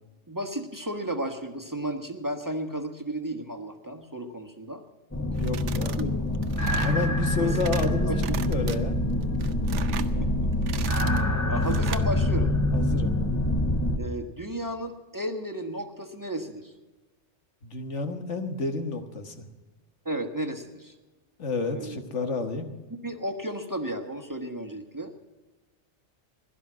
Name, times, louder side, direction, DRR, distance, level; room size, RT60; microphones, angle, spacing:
voice 1, 0.3-4.8 6.0-6.1 6.7-6.9 7.4-8.4 10.0-11.1 11.4-12.5 14.0-16.7 20.0-20.9 21.7-22.0 23.0-25.1, right 1 dB, 15° right, 4 dB, 1.2 m, -34 dB
sound 1, 5.1-14.0, left 1 dB, 15° left, 0.9 m, -25 dB
sound 2, 5.3-6.0 6.3-7.0 7.4-7.9 8.2-8.8 9.2-10.1 10.5-11.2 11.6-12.1, right 8 dB, 90° right, 1.1 m, -37 dB
voice 2, 5.4-6.1 6.8-9.0 12.7-13.2 17.6-19.5 21.4-22.7, left 3 dB, 90° left, 6 dB, 1.7 m, -30 dB
16.5 x 12.0 x 6.2 m, 1.2 s
omnidirectional pair, 1.2 m